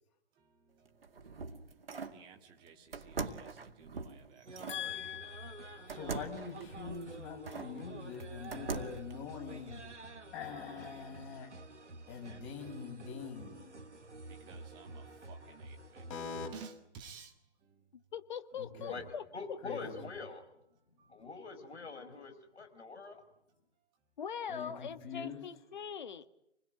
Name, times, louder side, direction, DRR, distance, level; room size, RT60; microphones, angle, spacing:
voice 1, 0.4-4.7 5.8-5.9 10.0-10.2 12.0-12.3 13.1-13.2 14.0-16.2 16.5-17.9 21.0-21.2, right 6 dB, 15° right, 4 dB, 1.8 m, -56 dB
sound 1, 0.9-2.2 2.9-4.8 5.9-7.7 8.2-9.1, right 4 dB, 55° right, 2.2 m, -42 dB
sound 2, 4.4-16.5, right 2 dB, 80° right, 1.9 m, -50 dB
voice 2, 4.7-9.8 10.3-11.5 12.1-13.7 16.1-16.5 18.6-19.0 19.6-19.9 24.5-25.4, left 6 dB, 25° left, 2 dB, 6.0 m, -43 dB
voice 3, 17.9-19.2 19.5-19.8 24.2-26.2, left 7 dB, 40° left, 11 dB, 1.6 m, -42 dB
voice 4, 19.3-20.4 21.1-23.2, left 4 dB, 65° left, 8 dB, 5.3 m, -44 dB
28.0 x 21.0 x 9.3 m, 0.78 s
figure-of-eight pair, 140°, 35 cm